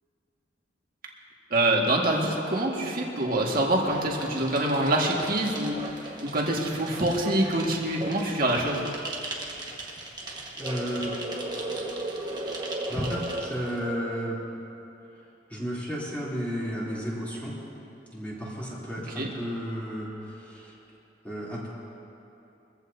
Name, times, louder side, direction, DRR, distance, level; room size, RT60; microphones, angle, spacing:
voice 1, 1.5-8.9 19.2-19.3, right 1 dB, 50° right, -1 dB, 1.9 m, -25 dB
sound 1, 3.7-14.0, right 2 dB, 20° right, 1.5 m, -36 dB
voice 2, 10.5-11.1 12.8-14.4 15.1-15.2 15.5-17.5 18.1-20.7 21.2-21.7, equal, 10° left, -8 dB, 3.3 m, -33 dB
23.5 x 15.0 x 2.8 m, 2.9 s
head